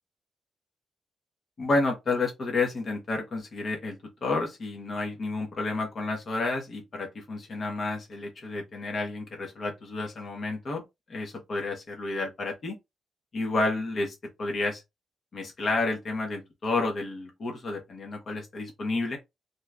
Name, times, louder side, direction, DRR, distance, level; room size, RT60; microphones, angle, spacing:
voice 1, 1.6-10.8 11.1-12.8 13.3-14.8 15.3-19.2, left 3 dB, 45° left, 0.9 m, -30 dB
2.7 x 2.3 x 3.3 m
cardioid pair, 115°, 0 cm